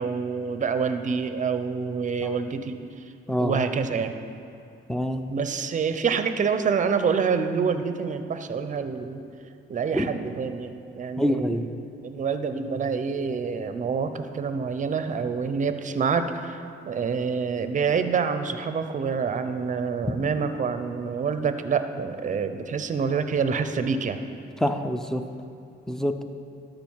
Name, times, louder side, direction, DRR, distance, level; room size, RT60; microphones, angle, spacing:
voice 1, 0.0-2.8 3.4-4.1 5.3-9.2 9.7-11.6 12.0-24.2, right 5 dB, 40° right, 9 dB, 0.6 m, -27 dB
voice 2, 3.3-3.6 4.9-5.2 9.9-10.1 11.2-11.7 24.6-25.2 25.9-26.2, equal, ahead, 7 dB, 0.5 m, -25 dB
12.5 x 5.2 x 4.6 m, 2.5 s
cardioid pair, 90°, 20 cm